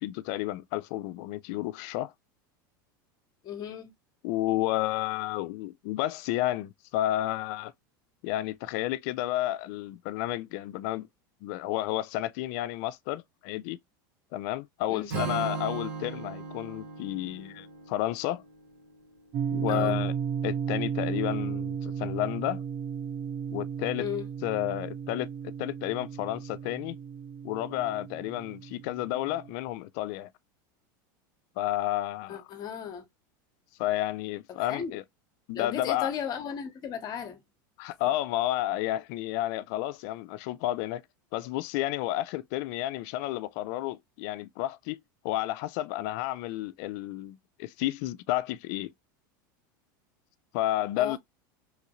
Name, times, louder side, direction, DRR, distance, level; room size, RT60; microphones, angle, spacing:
voice 1, 0.0-2.1 4.2-7.7 8.2-11.1 11.4-13.8 14.3-18.4 19.5-20.1 20.4-22.6 23.5-24.1 24.4-27.0 27.4-30.3 31.6-32.4 33.8-35.0 35.5-36.1 37.8-41.0 41.3-45.0 45.2-48.9 50.5-51.2, left 15 dB, 55° left, 0.4 m, -31 dB
voice 2, 3.4-3.9 14.9-15.1 19.7-20.0 24.0-24.3 32.3-33.0 34.5-35.0 35.5-37.4 51.0-51.2, left 8 dB, 35° left, 0.9 m, -35 dB
Strum, 15.1-19.3, right 5 dB, 85° right, 1.8 m, -37 dB
sound 1, 19.3-29.5, right 7 dB, 30° right, 0.3 m, -34 dB
3.1 x 2.5 x 2.9 m
supercardioid pair, 130°, 11 cm